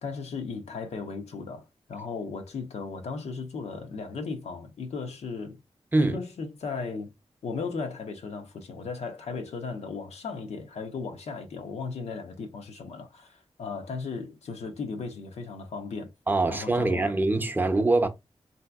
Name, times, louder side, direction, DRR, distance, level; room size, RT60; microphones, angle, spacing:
voice 1, 0.0-5.6 6.0-7.1 7.4-16.1 16.5-17.1, left 4 dB, 85° left, 0.6 m, -36 dB
voice 2, 16.3-18.1, right 2 dB, 20° right, 0.5 m, -23 dB
3.3 x 2.7 x 2.3 m
wide cardioid pair, 75°, 11 cm